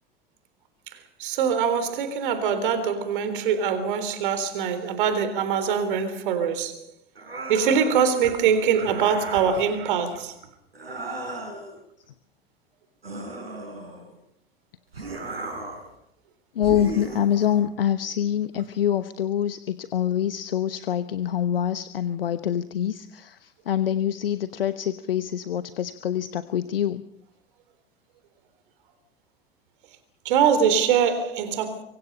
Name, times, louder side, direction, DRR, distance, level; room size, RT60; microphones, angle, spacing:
voice 1, 1.2-6.8 7.5-10.3 30.3-31.8, right 7 dB, 60° right, 3.7 m, -23 dB
sound 1, 7.2-8.1 8.8-9.6 10.7-11.8 13.0-14.2 14.9-15.9 16.6-17.6, right 2 dB, 75° right, 7.3 m, -35 dB
voice 2, 16.6-27.0, left 10 dB, 70° left, 1.1 m, -25 dB
26.5 x 24.5 x 5.5 m
figure-of-eight pair, 80°, 30 cm